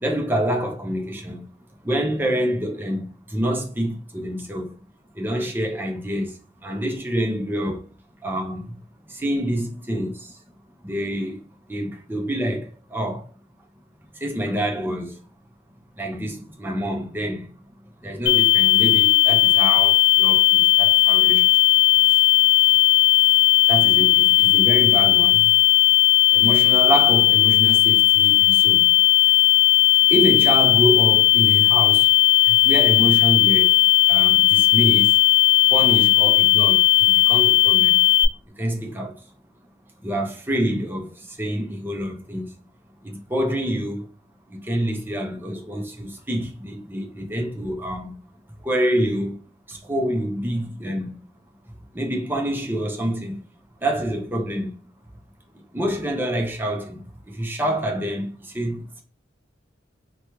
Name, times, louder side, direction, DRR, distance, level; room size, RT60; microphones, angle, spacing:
voice 1, 0.0-1.4 1.8-4.8 5.1-7.9 8.2-8.8 9.0-10.4 10.8-13.3 14.1-15.3 15.9-17.5 18.0-21.6 22.1-22.2 22.6-22.8 23.7-25.5 26.3-29.0 29.9-32.1 32.4-35.2 35.7-38.0 38.5-39.3 40.0-42.5 43.0-44.1 44.5-48.1 48.6-49.4 49.7-51.2 51.9-53.4 53.8-54.7 55.7-59.0, right 1 dB, 10° right, 0.5 m, -27 dB
sound 1, 18.3-38.3, left 17 dB, 70° left, 0.5 m, -16 dB
3.0 x 2.2 x 2.9 m
head